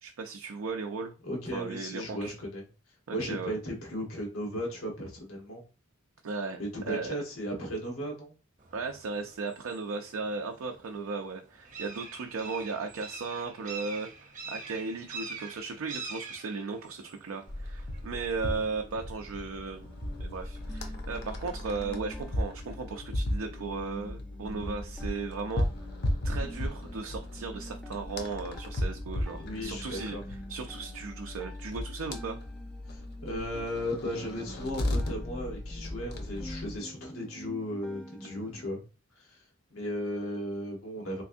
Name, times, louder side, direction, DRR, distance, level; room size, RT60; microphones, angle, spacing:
voice 1, 0.0-1.1 1.5-2.3 3.1-3.6 6.2-6.6 6.9-7.2 8.7-14.1 14.5-19.9 20.2-25.7 26.2-30.2 30.5-32.4, right 4 dB, 90° right, 5 dB, 0.4 m, -36 dB
voice 2, 1.2-2.6 3.1-5.6 6.6-8.3 29.4-30.2 32.9-38.8 39.2-39.4 39.7-41.2, equal, 90° left, -1 dB, 1.2 m, -36 dB
sound 1, 8.6-22.4, right 4 dB, 40° right, 0.7 m, -47 dB
sound 2, 17.5-36.8, left 1 dB, 50° left, 0.7 m, -36 dB
sound 3, 19.8-38.7, equal, 5° left, 0.4 m, -48 dB
3.4 x 3.1 x 2.6 m, 0.33 s
head